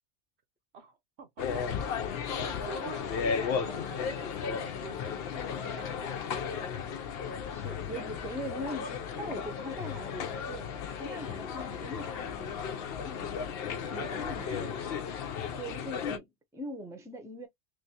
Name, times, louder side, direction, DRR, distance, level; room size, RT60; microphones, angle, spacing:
voice 1, 0.7-1.7 2.0-2.1 2.4-6.9 13.7-15.2, right 6 dB, 70° right, 1.1 m, -48 dB
sound 1, 1.4-16.2, left 6 dB, 65° left, 0.8 m, -35 dB
voice 2, 5.3-6.0 7.5-13.3 13.9-14.8 15.6-17.5, equal, 5° right, 0.6 m, -42 dB
3.3 x 3.2 x 2.8 m
omnidirectional pair, 1.1 m